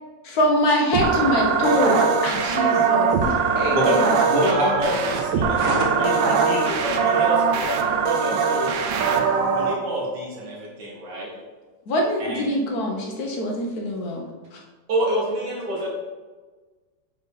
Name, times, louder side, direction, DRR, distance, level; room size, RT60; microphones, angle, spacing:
voice 1, 0.2-4.0 11.9-14.3 14.5-14.6, left 1 dB, 60° left, 0 dB, 1.3 m, -24 dB
sound 1, 0.9-9.7, right 5 dB, 85° right, 1.4 m, -21 dB
voice 2, 4.3-6.1 7.0-7.4 8.0-8.7 9.5-11.3 12.2-12.5 14.9-15.9, right 1 dB, 65° right, -3 dB, 2.0 m, -26 dB
voice 3, 5.8-8.1, left 4 dB, 80° left, 4 dB, 1.4 m, -33 dB
5.5 x 3.9 x 4.8 m, 1.3 s
omnidirectional pair, 2.0 m